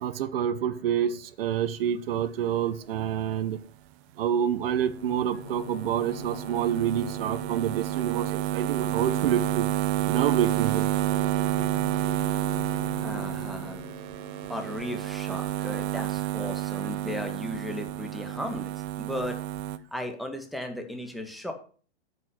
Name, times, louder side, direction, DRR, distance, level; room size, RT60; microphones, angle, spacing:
voice 1, 0.0-3.6 4.2-9.7 10.1-10.9, right 9 dB, 55° right, 1.1 m, -28 dB
sound 1, 4.7-15.7, left 6 dB, 80° left, 1.8 m, -44 dB
sound 2, 4.9-19.8, right 14 dB, 25° right, 0.7 m, -30 dB
voice 2, 13.0-13.8 14.5-18.7 19.0-19.4 19.9-21.5, left 1 dB, ahead, 1.6 m, -36 dB
9.5 x 5.6 x 7.9 m
hypercardioid pair, 135°, 34 cm